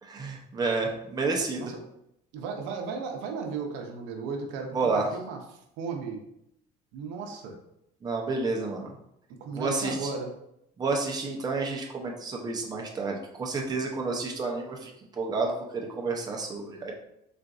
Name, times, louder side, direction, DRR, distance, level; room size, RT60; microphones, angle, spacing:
voice 1, 0.0-1.7 4.7-5.1 8.0-9.0 9.5-10.1 10.8-16.9, right 3 dB, 20° right, 0 dB, 0.6 m, -30 dB
voice 2, 2.3-6.2 6.9-7.6 9.4-10.3, right 5 dB, 85° right, 3 dB, 0.6 m, -35 dB
3.8 x 2.5 x 2.4 m, 0.79 s
cardioid pair, 115°, 19 cm